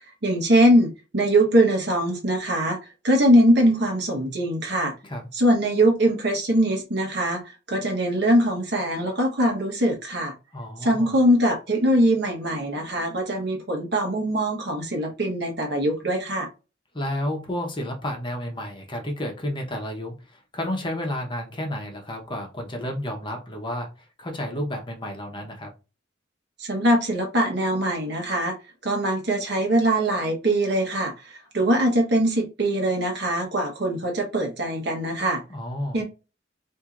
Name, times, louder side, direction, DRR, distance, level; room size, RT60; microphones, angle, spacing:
voice 1, 0.2-2.8 3.0-4.9 5.3-10.3 10.8-16.5 26.6-28.5 28.8-35.4 35.9-36.0, right 1 dB, 60° right, 1 dB, 1.1 m, -22 dB
voice 2, 10.5-11.2 16.9-25.7 35.5-36.0, left 1 dB, 25° left, 2 dB, 0.9 m, -31 dB
4.4 x 2.7 x 2.5 m, 0.30 s
head